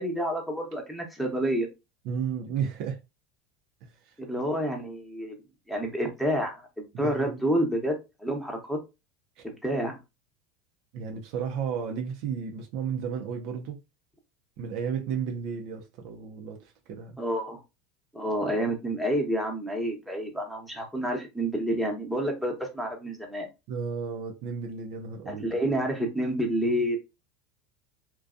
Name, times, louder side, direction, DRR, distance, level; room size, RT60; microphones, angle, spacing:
voice 1, 0.0-1.7 4.2-5.3 5.7-8.8 9.4-10.0 17.2-17.6 18.1-23.5 25.3-27.0, equal, ahead, 0.9 m, -29 dB
voice 2, 2.0-3.0 3.8-3.9 6.9-7.4 9.4-9.5 10.9-13.8 14.6-16.6 16.9-17.2 23.7-25.6, right 6 dB, 60° right, 0.6 m, -33 dB
2.6 x 2.2 x 2.4 m
supercardioid pair, 110°, 0 cm